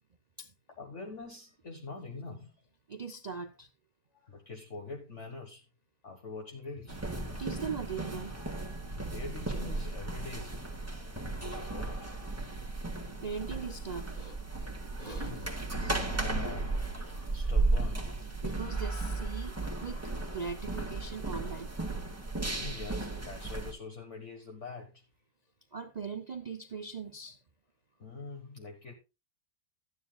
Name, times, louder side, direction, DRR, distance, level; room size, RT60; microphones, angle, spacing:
voice 1, 0.8-2.6 4.1-5.6 6.0-7.0 8.9-10.6 11.5-12.3 13.9-14.0 15.0-16.9 17.1-18.2 18.4-18.7 19.7-19.9 22.3-25.0 28.0-28.9, left 3 dB, 45° left, 1.6 m, -45 dB
voice 2, 2.9-3.7 7.3-8.3 13.2-14.4 15.0-15.5 18.4-21.7 25.7-27.4, right 5 dB, 70° right, 0.4 m, -40 dB
sound 1, 6.9-23.7, right 2 dB, 10° right, 1.6 m, -35 dB
14.0 x 9.6 x 2.3 m
omnidirectional pair, 1.8 m